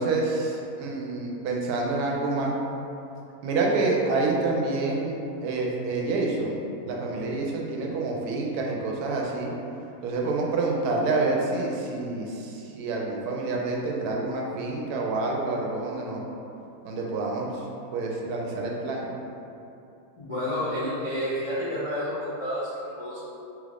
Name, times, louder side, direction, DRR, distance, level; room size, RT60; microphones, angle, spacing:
voice 1, 0.0-2.5 3.4-5.1 5.4-6.6 6.9-9.5 10.0-16.2 16.8-17.5 17.9-19.0, right 3 dB, 85° right, -1 dB, 1.1 m, -27 dB
voice 2, 20.2-23.2, equal, 65° left, -11 dB, 0.3 m, -30 dB
3.3 x 2.4 x 3.3 m, 2.8 s
omnidirectional pair, 1.6 m